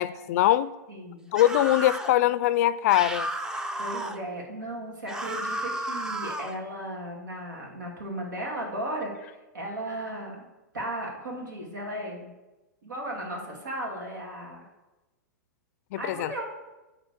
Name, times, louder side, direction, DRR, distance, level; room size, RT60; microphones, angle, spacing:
voice 1, 0.0-0.7 1.3-3.3 15.9-16.3, left 13 dB, 55° left, 16 dB, 0.4 m, -22 dB
voice 2, 0.9-1.3 3.8-10.5 10.7-12.3 12.8-14.7 16.0-16.4, right 1 dB, 85° right, -1 dB, 2.6 m, -36 dB
sound 1, 1.3-2.2 2.9-4.2 5.1-6.6, right 1 dB, 5° right, 0.5 m, -33 dB
8.8 x 4.0 x 6.9 m, 1.1 s
hypercardioid pair, 115°, 10 cm